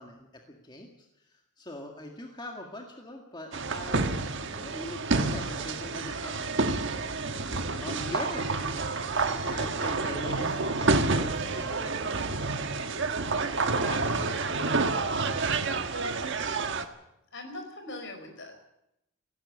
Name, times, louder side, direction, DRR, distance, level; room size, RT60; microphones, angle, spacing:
voice 1, 0.0-4.1 4.4-7.5 7.8-8.8 9.2-14.5, left 1 dB, 20° left, 2 dB, 1.9 m, -43 dB
sound 1, 3.5-16.8, right 3 dB, 55° right, 1.5 m, -29 dB
voice 2, 17.3-18.7, left 2 dB, 55° left, 5 dB, 4.9 m, -41 dB
17.5 x 16.0 x 10.0 m, 0.84 s
head